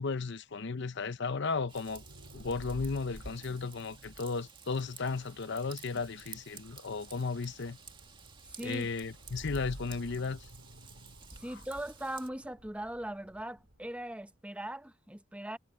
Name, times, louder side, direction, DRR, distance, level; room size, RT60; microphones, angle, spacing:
voice 1, 0.0-2.0 2.3-7.8 8.6-10.5 11.5-11.6, left 4 dB, 60° left, 0.7 m, -35 dB
Raindrop / Vehicle horn car horn honking / Trickle dribble, 1.7-12.3, right 4 dB, 25° right, 2.1 m, -51 dB
sound 1, 1.7-14.1, right 1 dB, 90° right, 3.3 m, -53 dB
voice 2, 8.5-8.9 11.3-15.6, right 1 dB, 5° right, 0.8 m, -40 dB
head